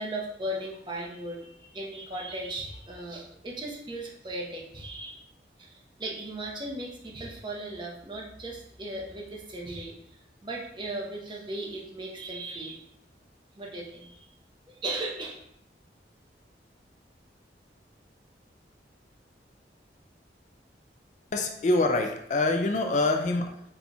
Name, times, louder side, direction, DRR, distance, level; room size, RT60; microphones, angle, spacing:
voice 1, 0.0-5.2 5.6-9.9 10.4-12.8 13.6-14.3 14.7-15.4, right 1 dB, 25° right, -2 dB, 0.7 m, -37 dB
voice 2, 21.3-23.6, left 2 dB, 40° left, 4 dB, 0.3 m, -25 dB
4.2 x 2.3 x 4.0 m, 0.75 s
head